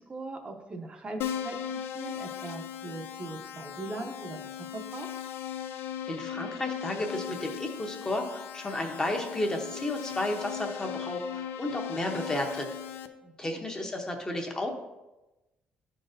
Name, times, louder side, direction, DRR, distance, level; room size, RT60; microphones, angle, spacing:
voice 1, 0.0-5.1 13.2-13.6, right 2 dB, 30° right, 3 dB, 0.6 m, -40 dB
Keyboard (musical), 1.2-13.1, left 9 dB, 85° left, 0.4 m, -38 dB
voice 2, 6.1-12.7 13.4-14.7, left 1 dB, 20° left, 2 dB, 0.7 m, -32 dB
11.0 x 3.9 x 2.6 m, 1.0 s
cardioid pair, 145°, 4 cm